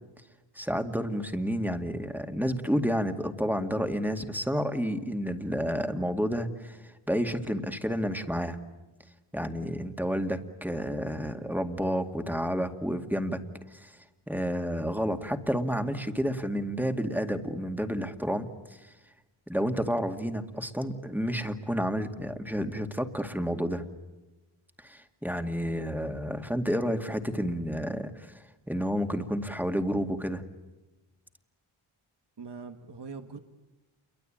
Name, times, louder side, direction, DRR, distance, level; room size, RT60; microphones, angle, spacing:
voice 1, 0.6-8.6 9.3-13.4 13.7-14.0 14.3-18.9 19.5-23.8 24.8-30.4, equal, 5° right, 6 dB, 2.2 m, -30 dB
voice 2, 32.4-33.4, right 5 dB, 55° right, 7 dB, 1.6 m, -42 dB
28.5 x 23.5 x 8.9 m, 1.1 s
cardioid pair, 60°, 50 cm